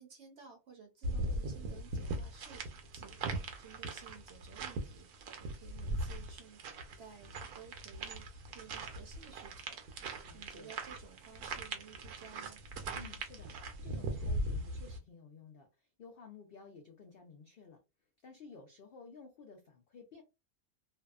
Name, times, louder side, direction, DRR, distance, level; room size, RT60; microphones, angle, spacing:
voice 1, 0.0-2.6 2.9-6.6 7.0-12.6, right 6 dB, 60° right, 3 dB, 0.8 m, -55 dB
sound 1, 1.0-15.0, right 2 dB, 90° right, 1.1 m, -40 dB
voice 2, 10.2-10.8 12.9-17.8 18.2-20.2, left 5 dB, 80° left, 3 dB, 0.5 m, -54 dB
2.7 x 2.3 x 2.3 m, 0.26 s
omnidirectional pair, 1.5 m